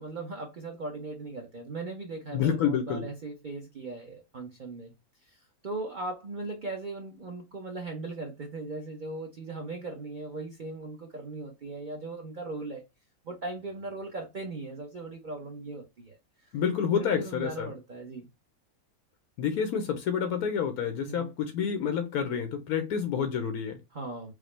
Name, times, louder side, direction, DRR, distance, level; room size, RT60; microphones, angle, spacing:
voice 1, 0.0-4.9 5.2-12.8 13.2-16.5 17.0-18.3 21.1-21.3 23.9-24.3, right 3 dB, 40° right, 0.8 m, -38 dB
voice 2, 2.3-3.1 16.5-17.7 19.4-23.8, left 7 dB, 85° left, 1.2 m, -28 dB
5.0 x 2.0 x 3.2 m
omnidirectional pair, 1.6 m